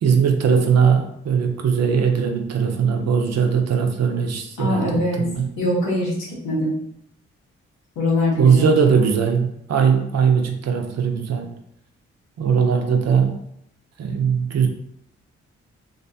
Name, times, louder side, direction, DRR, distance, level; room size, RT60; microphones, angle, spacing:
voice 1, 0.0-5.5 8.4-11.6 12.4-13.4 14.0-14.7, right 6 dB, 60° right, 4 dB, 0.6 m, -19 dB
voice 2, 4.6-5.2 5.6-6.2 6.4-6.7 8.0-8.7, left 1 dB, 85° left, -6 dB, 1.1 m, -22 dB
2.6 x 2.2 x 2.7 m, 0.72 s
supercardioid pair, 40°, 30 cm